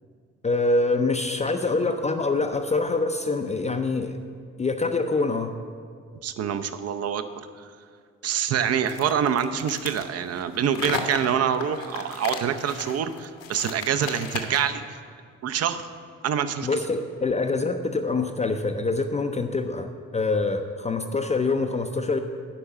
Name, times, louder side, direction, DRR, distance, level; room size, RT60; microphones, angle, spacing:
voice 1, 0.4-4.2 4.6-5.5 16.6-22.2, left 3 dB, 20° left, 5 dB, 0.5 m, -25 dB
voice 2, 6.2-7.7 8.2-15.0 15.4-15.9 16.2-16.8, right 8 dB, 40° right, 10 dB, 0.6 m, -26 dB
sound 1, 8.8-14.8, left 6 dB, 60° left, 1.0 m, -35 dB
9.9 x 5.4 x 7.1 m, 2.1 s
figure-of-eight pair, 45°, 38 cm